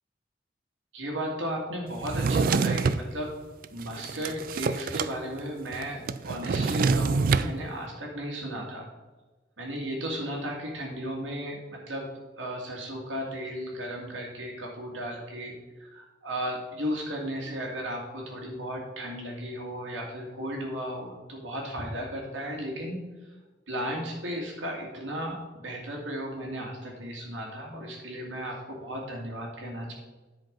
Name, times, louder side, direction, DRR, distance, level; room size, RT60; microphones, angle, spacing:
voice 1, 0.9-3.3 3.7-8.9 9.6-12.1 12.4-15.6 15.9-23.0 23.7-29.9, equal, 90° right, -1 dB, 2.2 m, -35 dB
Drawer open or close, 2.0-3.0 3.6-5.1 5.4-5.5 5.7-7.5, right 4 dB, 50° right, 0.3 m, -26 dB
10.5 x 5.1 x 5.2 m, 1.2 s
head